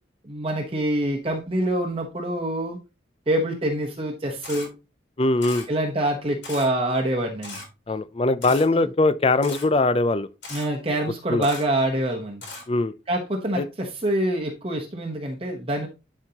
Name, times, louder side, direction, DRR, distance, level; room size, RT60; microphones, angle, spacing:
voice 1, 0.2-2.8 3.3-4.7 5.7-7.6 8.7-8.9 10.5-12.4 13.1-15.9, right 1 dB, 30° right, 1.0 m, -26 dB
Camera, 4.4-4.7 5.4-5.7 6.4-6.7 7.4-7.7 8.4-8.6 9.4-9.7 10.4-10.7 11.4-11.6 12.4-12.6, left 3 dB, 75° left, 3.6 m, -37 dB
voice 2, 5.2-5.7 7.9-10.3 11.3-11.5 12.7-12.9 13.5-13.6, left 2 dB, 30° left, 0.4 m, -21 dB
11.5 x 4.6 x 2.9 m
head